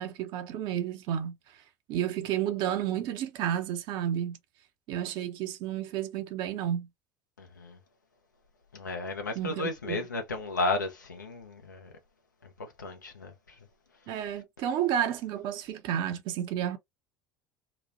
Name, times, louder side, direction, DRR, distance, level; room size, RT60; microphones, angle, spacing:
voice 1, 0.0-4.4 4.9-6.9 9.3-10.0 14.1-16.8, right 10 dB, 55° right, 0.5 m, -31 dB
voice 2, 7.4-7.8 8.7-11.9 12.8-13.3, left 2 dB, 85° left, 0.6 m, -33 dB
2.9 x 2.1 x 2.4 m
figure-of-eight pair, 65°, 10 cm